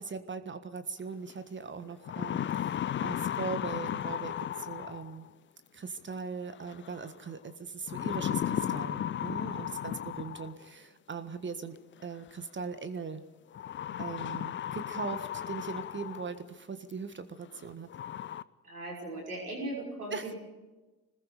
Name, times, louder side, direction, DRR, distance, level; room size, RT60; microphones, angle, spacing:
voice 1, 0.0-5.3 5.7-11.8 12.0-13.2 14.0-17.9 20.1-20.3, right 5 dB, 25° right, 11 dB, 1.6 m, -40 dB
sound 1, 1.3-1.4 1.9-5.3 6.7-7.1 7.9-10.7 11.9-12.0 13.5-16.4 16.9-17.0 17.5-17.6 17.9-18.4, left 10 dB, 25° left, 0.6 m, -35 dB
voice 2, 18.6-20.4, right 1 dB, 85° right, -1 dB, 5.9 m, -39 dB
26.0 x 20.0 x 5.1 m, 1.2 s
figure-of-eight pair, 55°, 44 cm